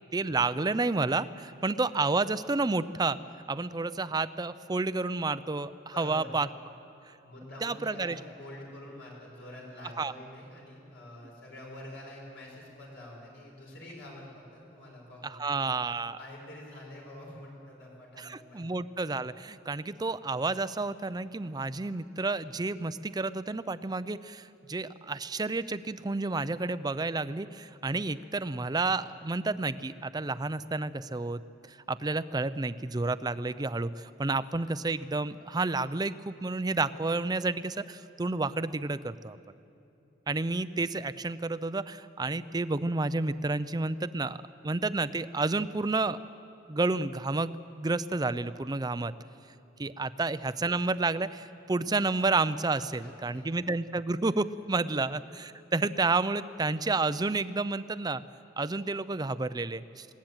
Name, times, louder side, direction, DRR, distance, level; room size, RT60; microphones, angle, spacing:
voice 1, 0.1-3.2 3.5-5.7 6.0-6.5 7.6-8.2 10.0-10.1 15.4-16.2 18.2-31.4 31.7-39.4 40.3-44.4 44.6-46.2 46.7-49.1 49.8-58.2 58.6-60.1, right 3 dB, 20° right, 14 dB, 0.5 m, -30 dB
voice 2, 5.9-6.4 7.2-15.7 16.2-18.7 52.7-53.5 54.9-55.0, left 1 dB, 70° left, -2 dB, 5.7 m, -47 dB
20.5 x 17.5 x 9.0 m, 2.8 s
head